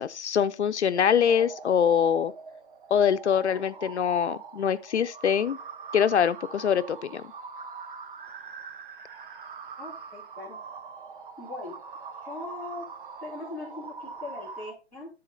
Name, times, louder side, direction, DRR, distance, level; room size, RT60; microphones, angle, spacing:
voice 1, 0.0-2.3 2.9-5.6 5.9-7.2, left 8 dB, 80° left, 0.8 m, -24 dB
sound 1, 0.9-14.7, right 5 dB, 50° right, 1.3 m, -43 dB
voice 2, 9.8-10.6 11.4-11.8 12.2-12.9 13.2-15.1, left 2 dB, 5° right, 4.6 m, -40 dB
12.5 x 4.3 x 4.0 m
hypercardioid pair, 160°, 34 cm